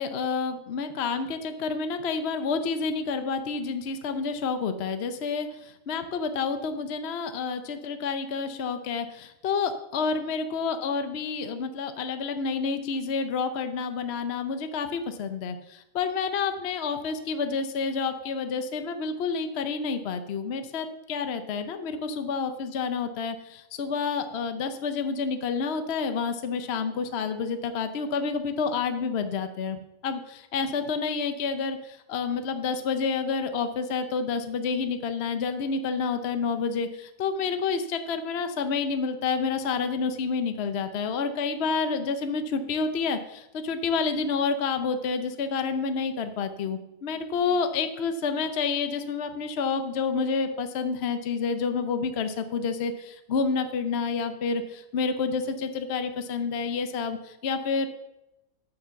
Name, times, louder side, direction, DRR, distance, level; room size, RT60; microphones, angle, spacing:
voice 1, 0.0-57.9, left 5 dB, 55° left, 8 dB, 0.7 m, -29 dB
8.3 x 6.8 x 6.9 m, 0.90 s
omnidirectional pair, 1.8 m